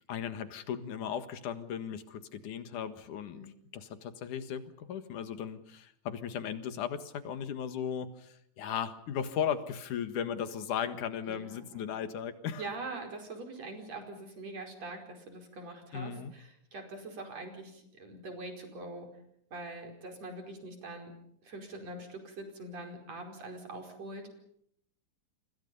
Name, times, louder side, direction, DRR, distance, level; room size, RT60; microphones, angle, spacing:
voice 1, 0.1-3.5 3.7-12.7 15.9-16.3, left 8 dB, 90° left, 10 dB, 3.2 m, -36 dB
voice 2, 11.3-11.9 12.6-19.1 19.5-21.1 21.4-24.4, right 2 dB, 60° right, 4 dB, 6.1 m, -43 dB
29.5 x 25.5 x 5.5 m, 0.71 s
omnidirectional pair, 3.4 m